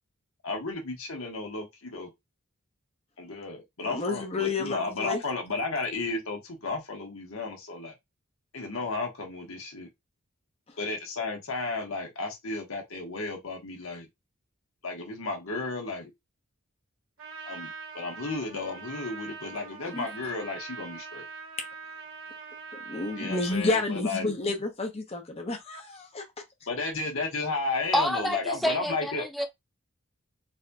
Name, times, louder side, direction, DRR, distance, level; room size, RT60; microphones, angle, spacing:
voice 1, 0.4-2.1 3.2-7.9 8.5-9.9 10.8-14.1 14.8-16.1 17.4-21.2 23.2-24.3 26.7-29.3, left 3 dB, 75° left, 1.2 m, -33 dB
voice 2, 3.8-5.2 10.7-10.8 19.9-20.1 22.7-26.2, left 3 dB, 30° left, 0.8 m, -30 dB
Trumpet, 17.2-23.7, right 5 dB, 65° right, 1.7 m, -43 dB
voice 3, 27.9-29.5, equal, ahead, 0.4 m, -28 dB
4.1 x 2.8 x 2.2 m
head